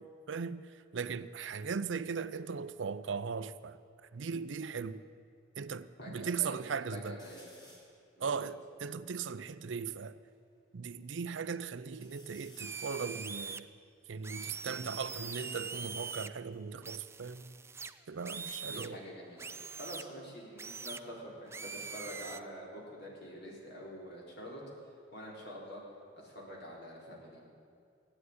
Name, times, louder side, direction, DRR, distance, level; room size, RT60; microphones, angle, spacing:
voice 1, 0.0-3.8 4.1-5.1 5.6-7.2 8.2-10.2 10.7-13.7 14.1-17.5 18.1-19.0, right 5 dB, 70° right, 0.5 m, -38 dB
voice 2, 6.0-7.6 8.2-8.5 18.7-24.6 25.1-25.8 26.2-27.4, equal, 60° left, 4.1 m, -46 dB
sound 1, 7.2-8.0 8.6-8.7 8.9-10.4 10.9-11.5 11.9-15.3 16.2-18.1 18.4-18.9 20.5-23.1 23.5-24.2, left 1 dB, 25° left, 2.4 m, -63 dB
sound 2, 12.6-13.6 14.2-16.3 16.8-18.9 19.4-20.0 20.6-21.0 21.5-22.4, right 5 dB, 15° right, 0.4 m, -43 dB
15.0 x 9.8 x 9.6 m
head